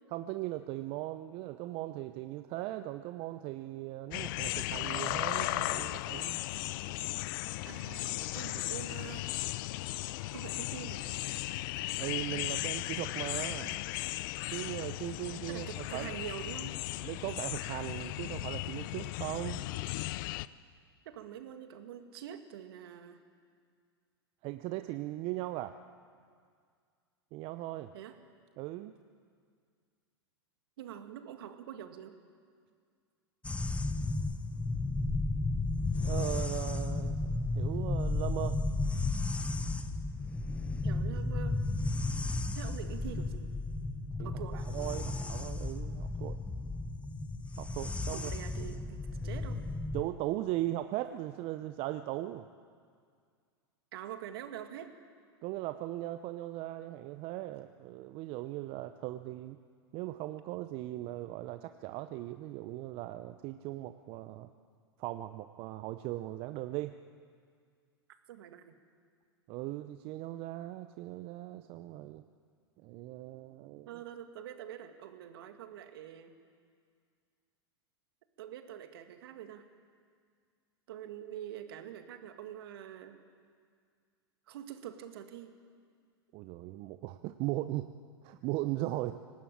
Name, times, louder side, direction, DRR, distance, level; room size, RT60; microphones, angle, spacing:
voice 1, 0.1-6.4 12.0-13.8 14.4-16.2 17.0-19.6 24.4-25.8 27.3-27.9 28.6-28.9 36.0-38.6 44.2-46.4 47.6-48.3 48.7-48.8 49.9-52.5 55.4-59.6 59.9-64.5 65.0-67.0 69.5-72.2 72.8-73.9 86.3-87.9 88.2-89.1, right 16 dB, 45° right, 10 dB, 0.8 m, -38 dB
sound 1, 4.1-20.5, left 18 dB, 55° left, 0.6 m, -36 dB
voice 2, 7.6-9.3 10.3-11.1 15.5-16.8 21.1-23.2 27.9-28.2 30.8-32.1 40.8-41.6 42.6-43.5 44.2-44.7 48.1-49.6 53.9-54.9 68.3-68.8 73.9-76.4 78.4-79.6 80.9-83.2 84.5-85.6, right 10 dB, 65° right, 7 dB, 2.2 m, -45 dB
sound 2, 33.4-50.0, left 2 dB, 10° left, 1.1 m, -33 dB
24.5 x 19.0 x 8.8 m, 2.1 s
hypercardioid pair, 100°, 13 cm